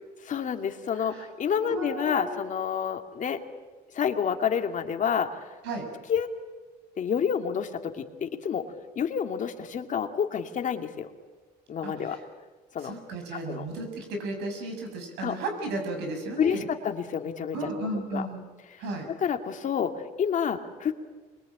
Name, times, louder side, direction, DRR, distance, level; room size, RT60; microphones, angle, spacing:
voice 1, 0.2-3.4 3.9-5.4 6.1-6.3 7.0-8.7 9.0-11.1 11.7-12.2 12.7-12.9 13.5-13.7 15.2-15.3 16.4-18.3 19.2-21.0, left 7 dB, 50° left, 5 dB, 2.5 m, -29 dB
voice 2, 1.6-2.4 5.6-5.9 11.8-12.2 12.8-16.7 17.5-18.4 18.8-19.1, right 2 dB, 90° right, 4 dB, 7.5 m, -34 dB
27.0 x 23.0 x 9.0 m, 1.3 s
cardioid pair, 110°, 17 cm